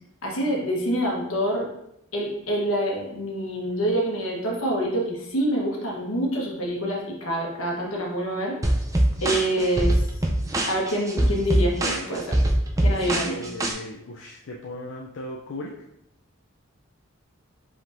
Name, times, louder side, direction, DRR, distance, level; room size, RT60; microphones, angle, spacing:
voice 1, 0.2-1.7 2.1-8.6 9.2-10.0 10.7-12.4 12.8-13.4, right 1 dB, 85° left, -1 dB, 1.2 m, -26 dB
sound 1, 8.6-13.7, right 1 dB, 15° right, 0.4 m, -23 dB
voice 2, 13.4-15.7, left 1 dB, 65° left, -1 dB, 0.4 m, -37 dB
5.1 x 3.6 x 2.6 m, 0.81 s
head